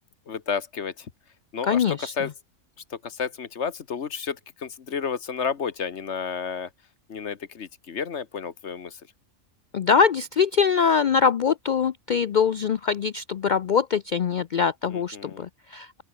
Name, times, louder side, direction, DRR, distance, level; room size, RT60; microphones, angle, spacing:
voice 1, 0.3-1.1 1.5-2.3 2.9-6.7 7.1-9.0 14.9-15.5, left 6 dB, 55° left, 1.4 m, -31 dB
voice 2, 1.7-2.1 9.7-16.0, left 6 dB, 75° left, 0.4 m, -23 dB
open air
omnidirectional pair, 1.4 m